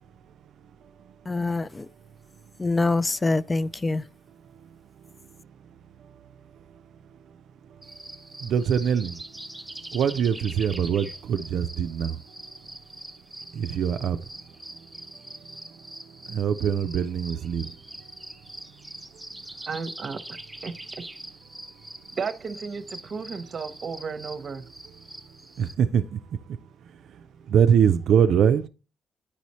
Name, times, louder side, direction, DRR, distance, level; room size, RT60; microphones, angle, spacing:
voice 1, 1.3-1.9 2.6-4.0, left 3 dB, 20° left, 0.3 m, -25 dB
sound 1, 7.8-25.7, right 1 dB, 5° right, 0.7 m, -43 dB
voice 2, 8.4-9.1 9.9-12.2 13.6-14.2 16.3-17.7 25.6-26.0 27.5-28.7, right 8 dB, 70° right, 0.4 m, -22 dB
voice 3, 19.7-20.2 20.6-20.7 22.2-24.7, right 5 dB, 45° right, 0.8 m, -33 dB
9.9 x 4.1 x 3.0 m
cardioid pair, 90°, 0 cm